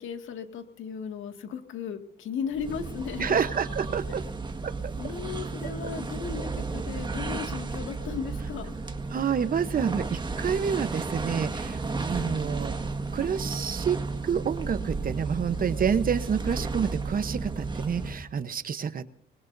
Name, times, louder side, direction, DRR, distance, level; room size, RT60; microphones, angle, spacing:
voice 1, 0.0-3.4 5.0-8.8 12.1-12.4, left 7 dB, 80° left, 6 dB, 2.1 m, -36 dB
sound 1, 2.5-18.3, right 3 dB, 25° right, 1.7 m, -33 dB
voice 2, 3.2-4.2 4.6-4.7 9.1-12.8 13.1-14.0 14.2-19.1, right 7 dB, 45° right, 12 dB, 1.0 m, -28 dB
24.5 x 21.0 x 2.7 m, 0.63 s
cardioid pair, 90°, 20 cm